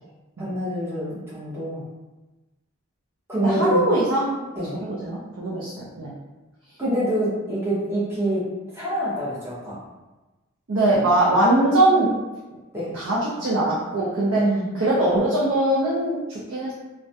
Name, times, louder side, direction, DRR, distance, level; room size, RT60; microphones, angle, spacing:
voice 1, 0.4-1.8 3.3-3.8 4.6-4.7 6.8-8.5 8.7-9.8 12.7-13.0 14.3-14.7, right 1 dB, 10° right, -9 dB, 0.6 m, -25 dB
voice 2, 3.4-4.5 4.8-6.1 10.7-12.1 12.9-14.4 14.8-16.7, right 1 dB, 65° right, -7 dB, 0.5 m, -21 dB
2.3 x 2.1 x 2.7 m, 1.1 s
head